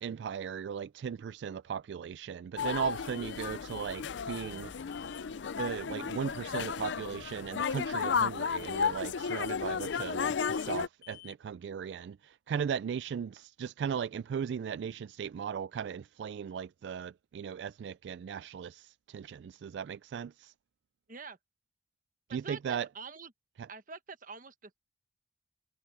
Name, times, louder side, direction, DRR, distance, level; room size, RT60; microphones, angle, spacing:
voice 1, 0.0-4.7 5.6-20.5 22.3-22.9 23.6-23.7, right 7 dB, 70° right, 0.3 m, -37 dB
sound 1, 2.6-10.9, left 6 dB, 80° left, 0.5 m, -33 dB
sound 2, 2.7-2.8 3.1-3.4 3.7-4.0 4.3-4.6 4.9-5.3 8.6-8.9 9.2-9.5 9.8-10.1 10.4-10.8 11.0-11.3, left 21 dB, 65° left, 5.4 m, -52 dB
voice 2, 22.3-23.3 23.7-24.8, right 4 dB, 50° right, 1.3 m, -46 dB
head